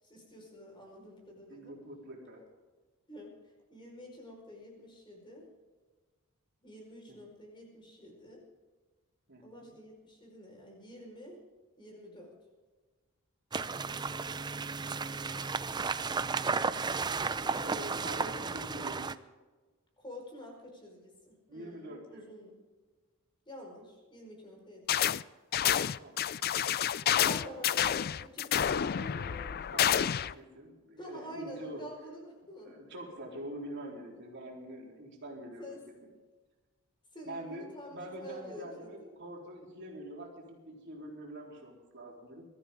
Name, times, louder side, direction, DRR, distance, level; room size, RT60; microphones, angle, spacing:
voice 1, 0.0-1.7 3.1-5.5 6.6-8.4 9.4-11.4 11.8-12.3 14.1-14.5 18.0-18.5 20.0-22.6 23.4-25.2 27.2-28.6 31.0-32.7 35.6-35.8 37.1-39.1, equal, 20° left, 0 dB, 4.9 m, -48 dB
voice 2, 1.5-2.4 9.3-9.7 17.6-19.1 21.5-22.2 26.0-26.2 27.2-27.9 28.5-31.8 32.6-35.8 37.2-42.5, right 1 dB, 55° right, -2 dB, 3.8 m, -45 dB
sound 1, 13.5-19.1, right 4 dB, 20° right, 0.4 m, -33 dB
sound 2, 24.9-25.2 25.5-30.3, left 10 dB, 45° left, 0.3 m, -29 dB
22.5 x 13.5 x 3.8 m, 1.3 s
head